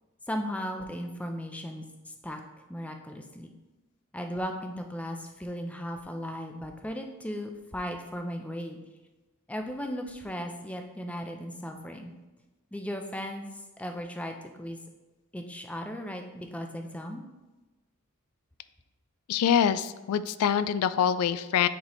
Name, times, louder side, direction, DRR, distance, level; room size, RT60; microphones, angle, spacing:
voice 1, 0.3-2.4 2.7-3.5 4.1-8.8 9.5-12.1 12.7-14.8 15.3-17.2, equal, 5° left, 4 dB, 0.4 m, -36 dB
voice 2, 19.3-21.7, left 8 dB, 90° left, 14 dB, 0.3 m, -25 dB
9.3 x 4.1 x 3.0 m, 1.1 s
head